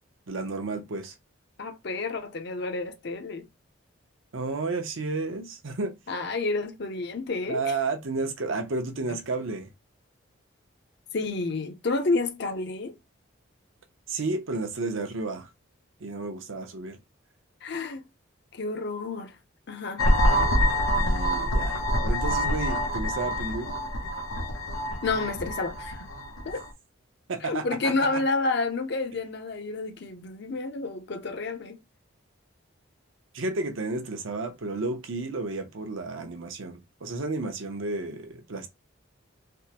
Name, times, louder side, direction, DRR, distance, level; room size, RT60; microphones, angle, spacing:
voice 1, 0.3-1.1 4.3-5.9 7.5-9.7 14.1-15.5 16.0-17.0 21.0-23.7 27.3-28.2 33.3-38.7, right 3 dB, 70° right, 0.7 m, -32 dB
voice 2, 1.6-3.5 6.1-7.7 9.1-9.2 11.1-13.0 17.6-18.1 18.5-19.3 19.7-20.0 25.0-26.1 26.4-26.6 27.4-31.8, left 3 dB, 55° left, 0.6 m, -30 dB
sound 1, 20.0-26.7, equal, 90° left, 0.7 m, -26 dB
3.4 x 2.1 x 2.8 m
head